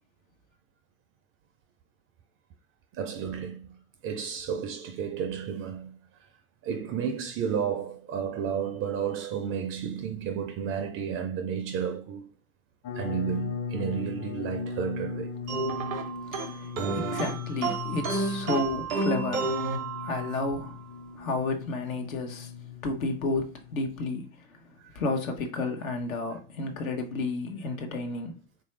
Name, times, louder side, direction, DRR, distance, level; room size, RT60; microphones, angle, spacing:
voice 1, 2.9-3.8 4.0-6.0 6.6-12.3 12.9-15.4 24.8-25.0, right 7 dB, 35° right, 0.4 m, -32 dB
sound 1, 12.8-23.8, left 6 dB, 35° left, 0.5 m, -38 dB
sound 2, 15.5-20.5, right 3 dB, 85° right, 0.7 m, -31 dB
voice 2, 16.1-20.8 21.1-22.5 22.8-24.6 24.9-28.4, left 3 dB, 80° left, 0.9 m, -32 dB
3.3 x 2.6 x 3.1 m
hypercardioid pair, 80°, 40 cm